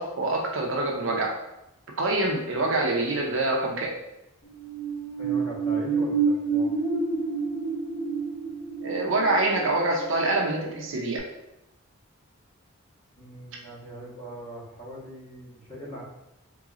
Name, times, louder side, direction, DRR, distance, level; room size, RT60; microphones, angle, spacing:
voice 1, 0.0-1.3 2.0-3.9 8.8-11.2, right 2 dB, 65° right, -1 dB, 0.6 m, -25 dB
sound 1, 4.5-10.8 11.2-11.3, right 4 dB, 55° left, 1.3 m, -28 dB
voice 2, 5.2-6.7 13.2-16.0, equal, 30° left, -8 dB, 1.2 m, -40 dB
3.9 x 2.9 x 2.4 m, 0.88 s
head